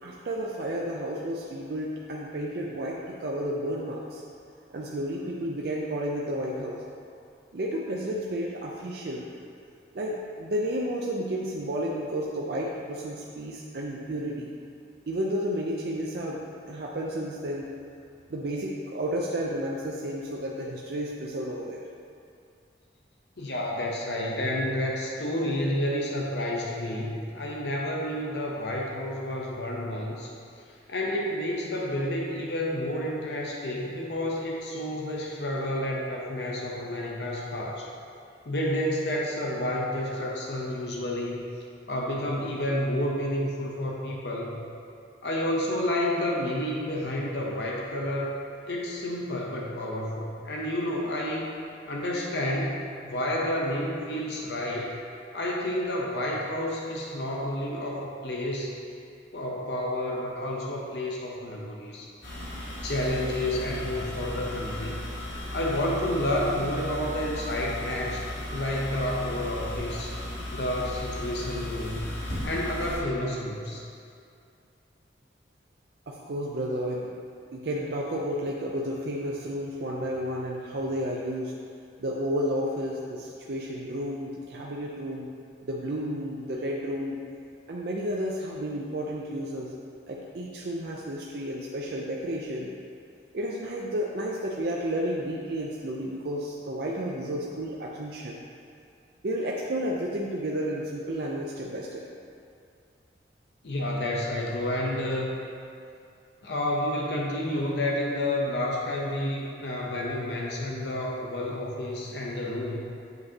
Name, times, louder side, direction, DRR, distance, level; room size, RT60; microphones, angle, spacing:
voice 1, 0.0-4.2 4.7-6.8 7.5-9.3 9.9-14.5 15.1-17.8 18.3-21.8 76.1-77.1 77.5-81.5 82.0-85.3 85.6-87.2 87.7-89.7 90.1-92.7 93.3-98.4 99.2-102.0, equal, 60° right, -3 dB, 0.5 m, -32 dB
voice 2, 23.4-30.3 30.9-37.9 38.5-41.4 41.9-44.6 45.2-48.4 48.7-51.5 51.9-55.0 55.3-58.7 59.3-62.1 62.8-65.0 65.5-68.2 68.5-70.2 70.5-73.8 103.6-105.3 106.4-112.8, left 1 dB, 65° left, -2 dB, 0.7 m, -30 dB
sound 1, 62.2-73.0, left 1 dB, 85° left, 1.6 m, -36 dB
7.7 x 5.2 x 2.8 m, 2.4 s
head